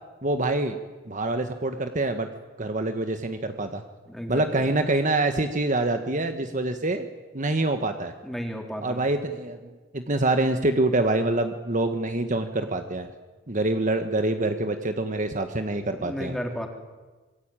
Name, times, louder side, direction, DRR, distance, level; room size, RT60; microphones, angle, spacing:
voice 1, 0.2-0.8 1.0-2.3 2.6-3.8 4.3-7.1 7.3-8.1 8.8-13.1 13.5-16.3, right 2 dB, 40° right, 7 dB, 1.4 m, -26 dB
voice 2, 4.1-4.7 8.2-9.0 16.0-16.7, equal, ahead, 2 dB, 4.1 m, -33 dB
26.5 x 23.0 x 9.1 m, 1.3 s
head